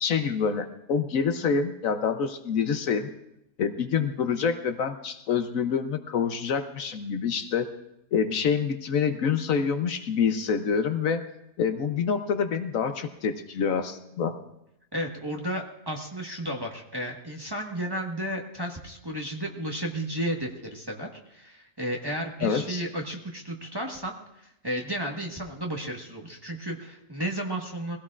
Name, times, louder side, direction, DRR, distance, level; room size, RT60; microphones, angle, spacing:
voice 1, 0.0-3.1 3.6-7.7 8.1-11.2 11.6-14.3 22.4-22.8, left 6 dB, 70° left, 8 dB, 1.1 m, -26 dB
voice 2, 14.9-28.0, right 1 dB, 15° right, 0 dB, 1.3 m, -33 dB
22.5 x 16.5 x 2.4 m, 0.83 s
omnidirectional pair, 1.6 m